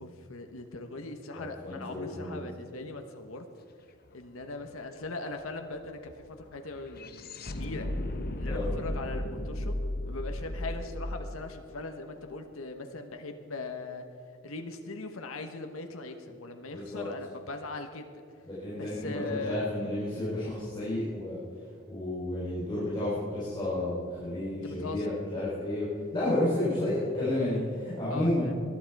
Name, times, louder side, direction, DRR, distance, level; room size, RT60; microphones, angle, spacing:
voice 1, 0.0-3.4 4.1-6.1 6.5-7.3 7.6-7.9 8.4-9.8 10.1-14.0 14.4-18.1 18.8-19.7 24.6-25.1 28.1-28.5, left 2 dB, 85° left, 5 dB, 1.1 m, -40 dB
voice 2, 1.4-2.4 8.4-8.7 16.7-17.0 18.4-21.4 21.9-28.5, left 1 dB, 20° left, -9 dB, 3.9 m, -31 dB
sound 1, 4.1-4.2 4.4-12.6, left 1 dB, 50° left, 0.9 m, -36 dB
20.5 x 11.5 x 4.7 m, 2.4 s
head